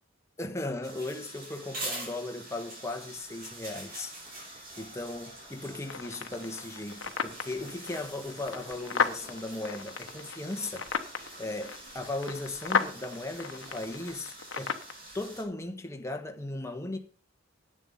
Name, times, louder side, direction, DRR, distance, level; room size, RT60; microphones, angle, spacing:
voice 1, 0.4-4.1 4.4-14.8 15.1-17.0, left 2 dB, 15° left, 1.3 m, -37 dB
sound 1, 0.8-15.4, right 1 dB, 50° right, 5.7 m, -45 dB
sound 2, 3.0-15.7, right 1 dB, 30° right, 2.2 m, -59 dB
sound 3, 5.8-14.9, left 5 dB, 80° left, 1.1 m, -35 dB
10.5 x 8.9 x 5.5 m
head